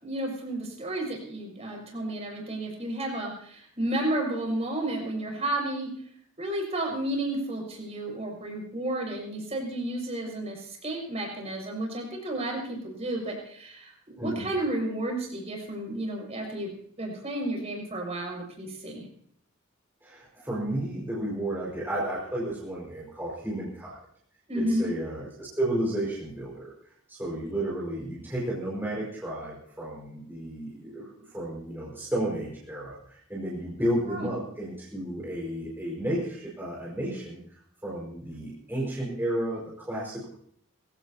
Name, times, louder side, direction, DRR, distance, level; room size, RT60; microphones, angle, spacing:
voice 1, 0.0-5.9 6.4-19.0 24.5-24.9 34.1-34.3, right 1 dB, 30° right, 0 dB, 6.1 m, -32 dB
voice 2, 14.2-14.5 20.0-24.0 24.6-26.7 27.1-40.3, right 1 dB, 10° right, -5 dB, 5.2 m, -32 dB
24.0 x 16.0 x 2.9 m, 0.62 s
head